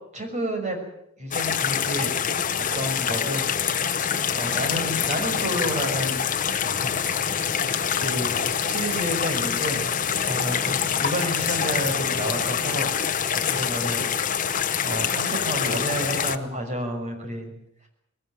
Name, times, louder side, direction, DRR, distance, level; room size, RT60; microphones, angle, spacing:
voice 1, 0.1-0.8 1.2-2.1 2.6-3.5 4.3-6.2 6.6-7.0 7.9-9.9 10.2-12.9 13.4-14.5 14.8-17.5, equal, 30° right, 3 dB, 6.1 m, -30 dB
sound 1, 1.3-16.4, left 7 dB, 35° left, 0.9 m, -25 dB
21.0 x 18.5 x 9.1 m, 0.77 s
head